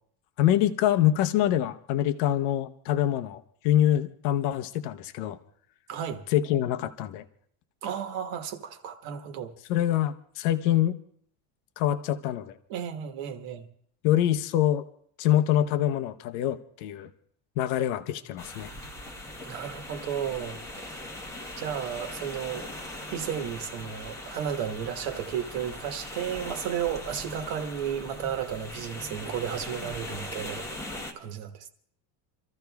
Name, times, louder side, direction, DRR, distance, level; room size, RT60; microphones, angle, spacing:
voice 1, 0.4-5.4 6.3-7.2 9.7-11.0 11.8-12.6 14.0-14.8 15.2-17.1 17.6-18.7, left 12 dB, 70° left, 0.8 m, -25 dB
voice 2, 5.9-6.2 7.8-9.5 12.7-13.7 19.4-21.0 21.6-22.7 23.1-30.6 31.1-31.7, right 9 dB, 60° right, 1.4 m, -33 dB
sound 1, 18.4-31.1, left 1 dB, 5° left, 0.8 m, -40 dB
29.0 x 14.0 x 2.3 m
cardioid pair, 175°, 43 cm